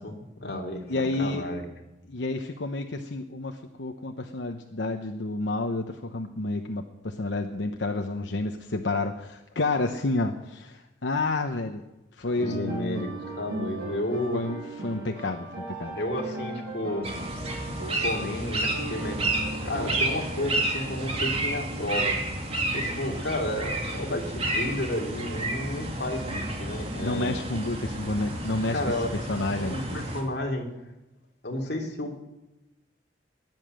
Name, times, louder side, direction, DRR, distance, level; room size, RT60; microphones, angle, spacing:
voice 1, 0.0-1.6 12.3-14.4 15.9-17.1 18.0-19.2 19.6-22.2 22.7-27.4 28.7-29.1 29.5-30.7 31.4-32.2, left 1 dB, 65° left, 1 dB, 2.8 m, -32 dB
voice 2, 0.9-1.4 2.1-11.8 12.2-13.1 14.3-16.0 27.0-30.0, left 2 dB, 90° left, 5 dB, 0.9 m, -30 dB
sound 1, 12.3-23.6, right 2 dB, 60° right, 7.7 m, -39 dB
sound 2, 17.0-30.2, right 1 dB, 35° right, 2.5 m, -31 dB
16.5 x 10.5 x 7.7 m, 1.0 s
head